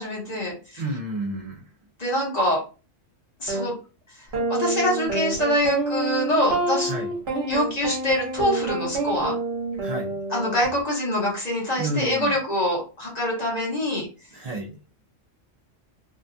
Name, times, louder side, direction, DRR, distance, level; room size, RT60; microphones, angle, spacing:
voice 1, 0.0-0.8 2.0-2.6 3.4-3.7 4.5-6.9 7.5-9.4 10.3-14.1, left 1 dB, 35° left, -3 dB, 1.0 m, -24 dB
voice 2, 0.8-1.6 6.8-7.1 9.8-10.2 11.8-12.3 14.3-14.8, right 1 dB, 70° right, -2 dB, 0.3 m, -30 dB
sound 1, 3.5-3.6 4.3-10.7, right 3 dB, 55° right, 1.0 m, -28 dB
2.7 x 2.2 x 2.6 m, 0.34 s
omnidirectional pair, 1.3 m